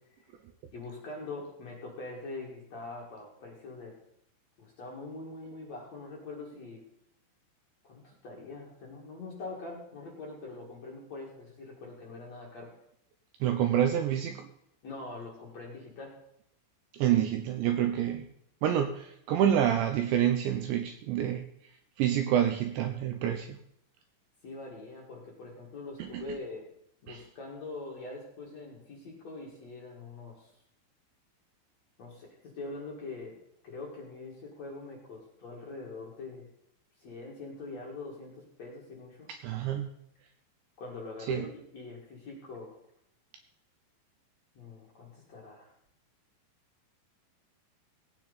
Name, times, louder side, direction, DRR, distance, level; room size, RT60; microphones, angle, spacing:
voice 1, 0.7-3.9 4.6-6.8 7.8-12.7 14.8-16.1 24.4-26.7 27.0-30.5 32.0-33.4 33.6-36.5 37.0-39.3 40.8-42.8 44.5-45.7, left 3 dB, 50° left, -3 dB, 2.3 m, -43 dB
voice 2, 13.4-14.5 16.9-18.3 18.6-21.5 22.0-23.6 26.0-26.4 27.1-27.2 39.4-39.9 41.3-41.5, right 10 dB, 90° right, 6 dB, 2.6 m, -28 dB
18.0 x 8.9 x 4.1 m, 0.73 s
omnidirectional pair, 6.0 m